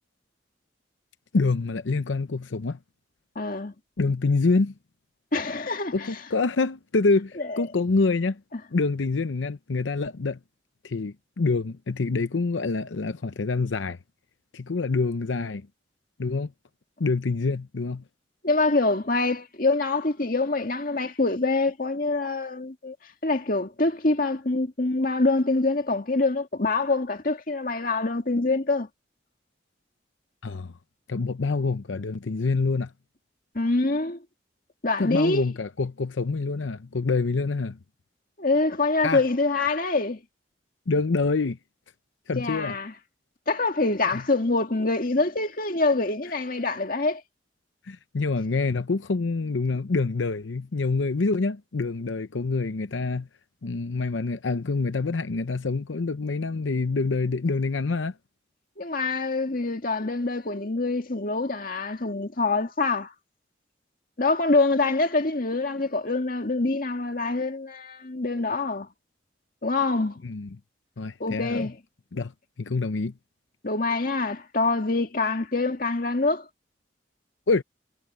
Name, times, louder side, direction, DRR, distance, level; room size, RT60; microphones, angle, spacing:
voice 1, 1.3-2.8 4.0-4.7 5.9-8.4 8.7-10.4 10.8-14.0 14.5-15.7 16.2-16.5 17.0-18.0 30.4-30.7 31.1-32.9 35.0-37.8 39.0-39.2 40.9-41.6 42.3-42.8 44.1-44.2 47.9-53.3 53.6-58.1 70.2-70.5 71.0-71.7 72.1-72.3 72.6-73.1 77.5-77.6, left 3 dB, 90° left, 0.7 m, -26 dB
voice 2, 3.4-3.7 5.3-6.1 7.5-7.6 18.4-23.0 23.2-28.9 33.6-34.2 34.8-35.4 38.4-40.2 42.4-42.9 43.5-47.2 58.8-63.1 64.2-68.9 69.6-70.2 71.2-71.8 73.6-76.5, left 3 dB, 50° left, 2.0 m, -25 dB
head